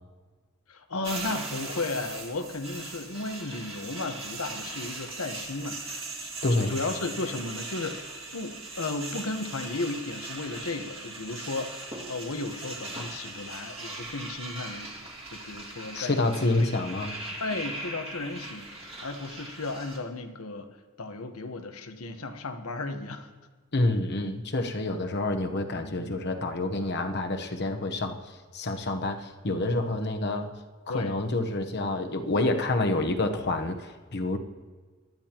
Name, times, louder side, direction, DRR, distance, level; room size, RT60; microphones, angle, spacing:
voice 1, 0.7-6.3 6.7-14.9 15.3-16.8 17.4-20.7 21.0-23.3 25.7-26.2 30.9-31.2, left 3 dB, 85° left, 6 dB, 1.2 m, -35 dB
sound 1, 1.0-20.0, right 2 dB, 30° right, 1.9 m, -39 dB
voice 2, 6.4-6.7 15.9-17.1 23.7-28.2 28.5-30.5 30.9-34.4, left 2 dB, 50° left, 6 dB, 1.0 m, -28 dB
19.5 x 12.0 x 3.0 m, 1.4 s
head